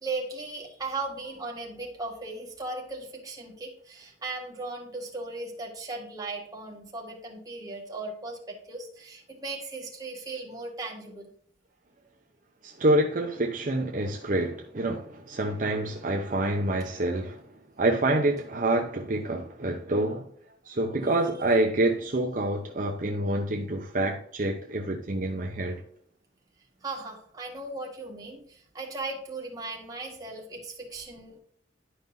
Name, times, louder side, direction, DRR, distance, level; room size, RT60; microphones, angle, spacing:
voice 1, 0.0-11.3 26.8-31.4, right 3 dB, 20° right, 1.9 m, -37 dB
voice 2, 12.6-17.5 17.8-20.3 20.6-25.8, right 1 dB, 50° right, 0.7 m, -27 dB
11.0 x 5.4 x 2.7 m
head